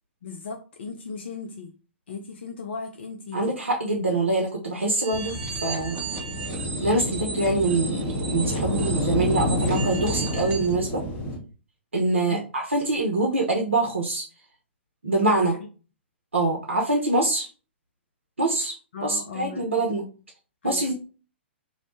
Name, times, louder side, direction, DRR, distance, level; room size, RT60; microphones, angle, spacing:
voice 1, 0.2-1.7 2.1-3.5 4.0-4.3 12.3-12.4 15.3-15.6 18.9-19.9 20.6-20.9, left 5 dB, 60° left, 3 dB, 0.4 m, -37 dB
voice 2, 3.3-6.0 6.8-11.0 11.9-14.3 15.0-15.5 16.3-17.5 18.4-18.8 19.0-20.0 20.6-20.9, right 2 dB, 80° right, 0 dB, 0.6 m, -24 dB
sound 1, 5.0-10.8, right 5 dB, 25° right, 0.7 m, -36 dB
sound 2, 5.1-11.4, left 1 dB, 25° left, 0.7 m, -29 dB
2.6 x 2.0 x 2.9 m, 0.36 s
figure-of-eight pair, 115°, 7 cm